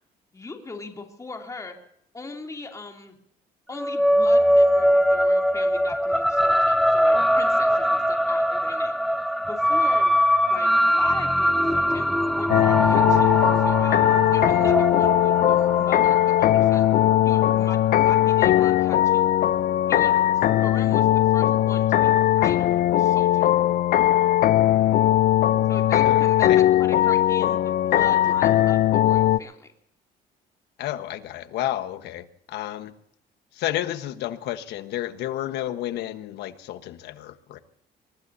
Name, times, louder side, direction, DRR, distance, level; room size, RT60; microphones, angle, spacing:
voice 1, 0.3-1.7 2.1-3.2 3.7-9.2 9.5-10.2 10.5-12.1 12.3-14.0 14.3-19.4 19.9-23.5 25.7-29.7, left 3 dB, 20° left, 2.9 m, -39 dB
sound 1, 3.7-18.5, equal, ahead, 0.9 m, -22 dB
sound 2, 12.5-29.4, left 13 dB, 60° left, 0.5 m, -19 dB
voice 2, 26.0-26.6 30.8-32.9 33.5-37.6, left 13 dB, 80° left, 1.3 m, -31 dB
23.5 x 21.0 x 2.8 m
cardioid pair, 110°, 17 cm